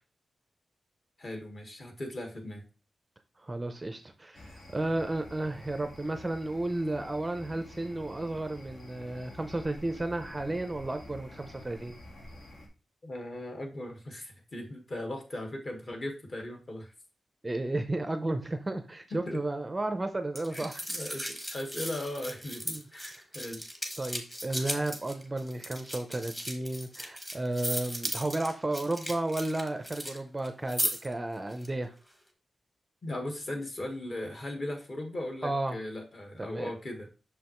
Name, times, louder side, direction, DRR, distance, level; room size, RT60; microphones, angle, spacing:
voice 1, 1.2-2.6 13.0-16.9 19.1-19.4 20.5-23.7 33.0-37.2, left 1 dB, 35° left, 3 dB, 1.4 m, -38 dB
voice 2, 3.4-12.0 17.4-20.8 22.7-22.8 23.1-23.2 24.0-31.9 35.4-35.8 36.4-36.7, right 2 dB, 15° right, 7 dB, 0.5 m, -33 dB
sound 1, 4.3-12.7, left 1 dB, 70° left, 1.6 m, -49 dB
sound 2, 20.3-30.2 30.4-31.1 31.5-31.7, equal, 5° left, 1.1 m, -37 dB
6.4 x 5.4 x 3.0 m, 0.33 s
wide cardioid pair, 165°, 0 cm